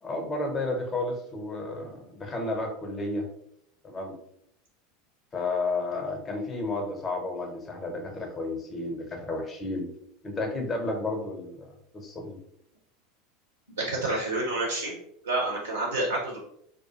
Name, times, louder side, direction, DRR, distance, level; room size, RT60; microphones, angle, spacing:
voice 1, 0.0-3.3 3.8-4.2 5.3-9.9 10.2-11.7 11.9-12.4, left 2 dB, 25° left, 2 dB, 0.7 m, -32 dB
voice 2, 13.8-14.9 15.2-16.5, right 2 dB, 85° right, -2 dB, 0.6 m, -28 dB
2.4 x 2.3 x 2.7 m, 0.72 s
figure-of-eight pair, 80°, 0 cm